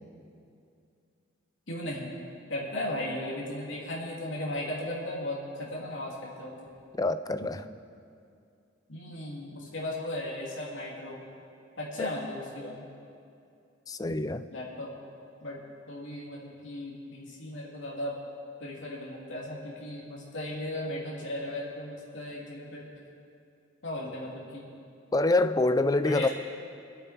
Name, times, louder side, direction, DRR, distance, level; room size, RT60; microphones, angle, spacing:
voice 1, 1.7-2.1 2.5-6.5 8.9-11.2 11.8-12.8 14.5-14.9 15.4-15.6 15.9-18.2 18.6-22.9 23.8-24.7 26.0-26.3, left 1 dB, 70° left, -4 dB, 3.2 m, -36 dB
voice 2, 7.0-7.6 12.0-12.1 13.9-14.5 25.1-26.3, left 2 dB, 20° left, 11 dB, 0.4 m, -26 dB
25.5 x 8.5 x 4.6 m, 2.5 s
head